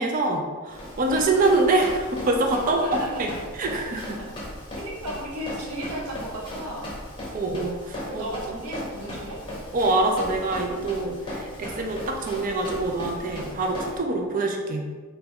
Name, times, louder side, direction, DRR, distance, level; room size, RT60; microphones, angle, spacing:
voice 1, 0.0-2.8 3.1-4.2 7.3-8.2 9.7-14.9, right 2 dB, 35° right, 2 dB, 0.3 m, -25 dB
Run, 0.7-14.0, equal, 20° left, 0.8 m, -37 dB
voice 2, 2.7-3.4 4.8-6.9 8.1-9.4, right 1 dB, 85° right, -4 dB, 0.8 m, -34 dB
3.0 x 2.3 x 3.5 m, 1.4 s
head